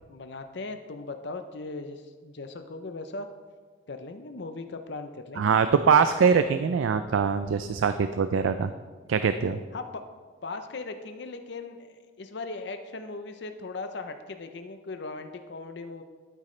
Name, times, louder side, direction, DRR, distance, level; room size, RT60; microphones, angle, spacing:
voice 1, 0.1-3.3 3.9-5.8 9.7-10.0 10.4-16.0, left 3 dB, 60° left, 7 dB, 0.6 m, -38 dB
voice 2, 5.4-8.7 9.1-9.6, right 6 dB, 85° right, 10 dB, 0.4 m, -23 dB
12.0 x 8.9 x 3.2 m, 1.5 s
head